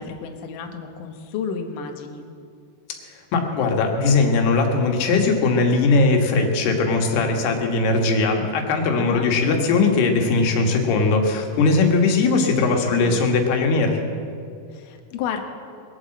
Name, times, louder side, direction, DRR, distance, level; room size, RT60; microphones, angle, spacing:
voice 1, 0.0-2.2 8.9-9.3 12.5-13.2 14.7-15.4, left 6 dB, 65° left, 4 dB, 2.4 m, -32 dB
voice 2, 3.3-14.0, left 3 dB, 85° left, 3 dB, 3.6 m, -19 dB
21.5 x 8.7 x 7.6 m, 2.3 s
omnidirectional pair, 4.6 m